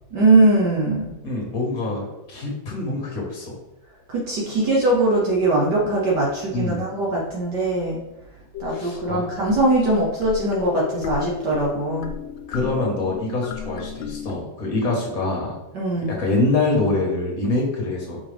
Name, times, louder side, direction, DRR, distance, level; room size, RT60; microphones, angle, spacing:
voice 1, 0.1-1.1 4.1-8.0 8.6-12.1 15.7-16.1, right 2 dB, 60° right, -4 dB, 1.5 m, -21 dB
voice 2, 1.2-3.6 6.5-6.8 8.7-9.2 12.5-15.5 16.1-18.2, left 2 dB, 45° left, -1 dB, 1.7 m, -25 dB
sound 1, 8.5-14.3, left 8 dB, 75° left, 1.2 m, -34 dB
5.7 x 4.8 x 3.4 m, 1.0 s
omnidirectional pair, 2.2 m